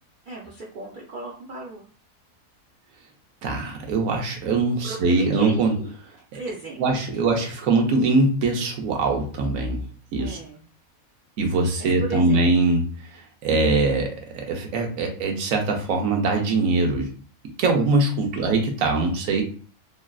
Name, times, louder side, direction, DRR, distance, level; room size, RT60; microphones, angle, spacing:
voice 1, 0.3-1.8 4.8-5.9 6.3-6.8 10.2-10.7 11.8-12.4 18.3-18.5, right 2 dB, 90° right, -4 dB, 0.4 m, -36 dB
voice 2, 3.4-5.7 6.3-6.4 6.8-9.8 10.1-10.4 11.4-12.9 13.4-17.1 17.6-19.4, right 3 dB, 70° right, 2 dB, 1.0 m, -22 dB
3.2 x 2.3 x 2.3 m, 0.43 s
omnidirectional pair, 1.6 m